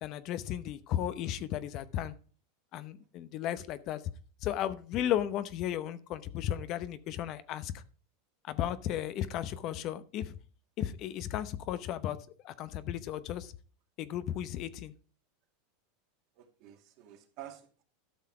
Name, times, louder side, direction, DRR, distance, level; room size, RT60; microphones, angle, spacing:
voice 1, 0.0-2.1 2.7-4.0 4.4-7.8 8.4-10.4 10.8-12.2 12.4-13.5 14.0-14.9, left 11 dB, 50° left, 0.8 m, -35 dB
voice 2, 16.4-17.8, right 12 dB, 55° right, 2.3 m, -50 dB
12.5 x 5.7 x 4.7 m
hypercardioid pair, 115°, 0 cm